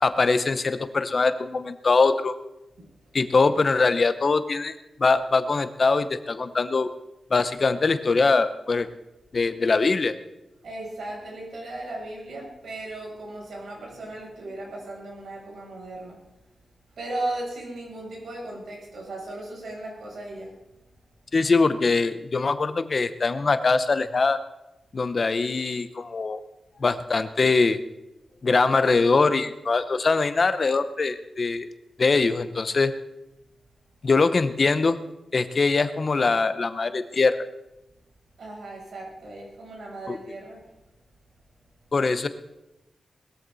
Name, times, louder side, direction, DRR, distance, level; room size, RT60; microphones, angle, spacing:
voice 1, 0.0-2.3 3.1-4.7 5.0-6.9 7.3-8.9 9.3-10.2 21.3-24.4 24.9-26.4 26.8-27.8 28.4-31.7 32.0-32.9 34.0-35.0 35.3-37.5 40.1-40.2 41.9-42.3, left 4 dB, 40° left, 11 dB, 0.8 m, -22 dB
voice 2, 2.8-3.1 10.6-16.2 17.0-20.5 38.4-40.6, right 2 dB, 80° right, -3 dB, 7.6 m, -36 dB
20.0 x 14.0 x 4.1 m, 0.95 s
wide cardioid pair, 165°, 0 cm